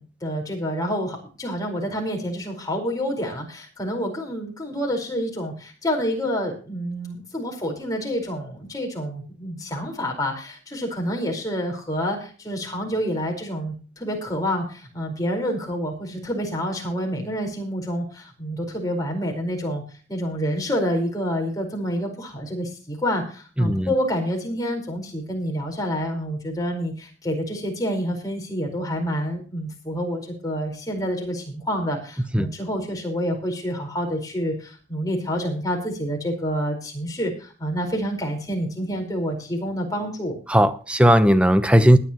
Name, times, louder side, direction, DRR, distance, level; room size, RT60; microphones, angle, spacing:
voice 1, 0.0-19.8 20.1-40.4, equal, 20° left, 4.8 m, -28 dB
voice 2, 23.6-23.9 32.3-32.5 40.5-42.0, equal, 5° right, 0.9 m, -16 dB
20.5 x 9.8 x 3.0 m
head